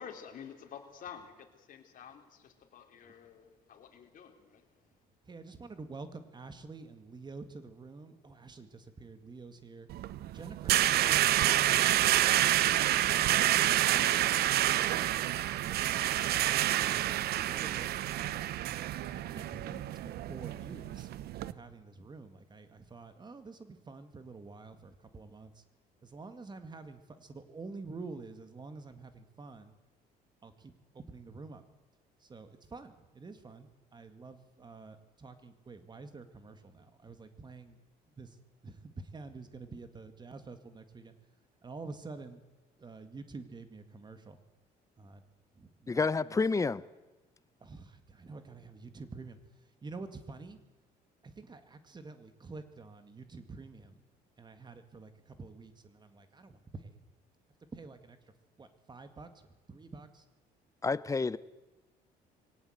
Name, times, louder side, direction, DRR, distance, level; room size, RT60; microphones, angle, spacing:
voice 1, 0.0-4.7, left 8 dB, 55° left, 3.7 m, -49 dB
voice 2, 5.2-9.9 10.3-12.1 12.6-18.5 19.1-21.1 21.4-25.6 26.0-29.7 30.4-31.6 32.2-37.8 38.1-38.4 38.6-41.1 41.6-42.4 42.8-44.4 45.0-45.2 45.5-46.4 47.6-50.6 51.2-54.0 54.4-57.0 57.7-58.2 58.6-59.4 59.7-60.3, right 3 dB, 25° right, 2.1 m, -48 dB
sound 1, 9.9-21.5, right 13 dB, 70° right, 0.8 m, -28 dB
voice 3, 45.9-46.8 60.8-61.4, left 4 dB, 20° left, 0.7 m, -29 dB
23.0 x 18.0 x 8.0 m
cardioid pair, 110°, 17 cm